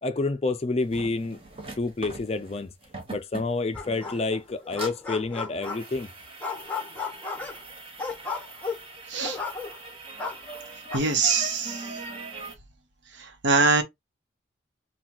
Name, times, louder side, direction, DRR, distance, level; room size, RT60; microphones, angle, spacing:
voice 1, 0.0-1.4 1.8-2.7 3.1-6.1, left 3 dB, 30° left, 0.4 m, -28 dB
sound 1, 0.8-12.6, right 3 dB, 30° right, 1.1 m, -41 dB
sound 2, 3.7-4.4 4.6-6.0 6.4-9.9 10.2-11.0, left 4 dB, 5° left, 1.0 m, -34 dB
voice 2, 10.9-11.9 13.2-13.8, right 4 dB, 70° right, 0.9 m, -23 dB
5.7 x 2.3 x 3.0 m
head